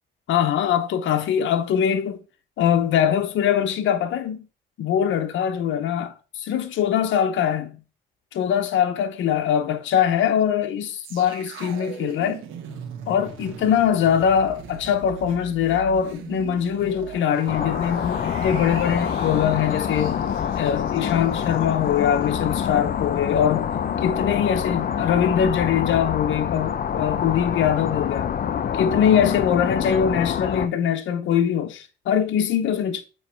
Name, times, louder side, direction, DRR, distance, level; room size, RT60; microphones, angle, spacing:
voice 1, 0.3-2.2 2.6-4.5 4.8-7.8 8.3-12.4 13.1-20.2 20.5-28.3 28.7-33.0, left 8 dB, 75° left, 0.8 m, -22 dB
sound 1, 11.0-22.2 22.6-22.7, right 6 dB, 90° right, 1.2 m, -40 dB
sound 2, 17.5-30.7, left 8 dB, 50° left, 0.6 m, -26 dB
8.3 x 3.2 x 4.5 m
cardioid pair, 90°, 20 cm